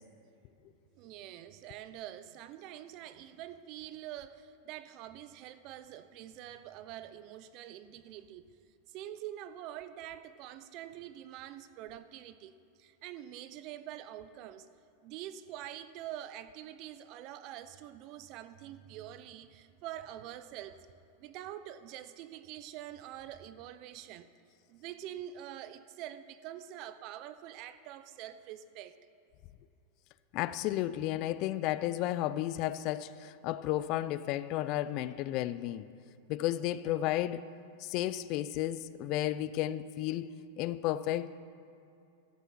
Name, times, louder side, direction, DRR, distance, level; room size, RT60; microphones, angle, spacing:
voice 1, 1.0-8.5 8.9-12.5 12.8-14.7 15.0-20.9 21.2-24.3 24.7-29.0, right 12 dB, 45° right, 0.6 m, -45 dB
voice 2, 30.3-35.9 36.3-37.4 37.8-40.3 40.6-41.3, left 14 dB, 45° left, 0.4 m, -33 dB
13.5 x 7.1 x 7.4 m
supercardioid pair, 135°, 0 cm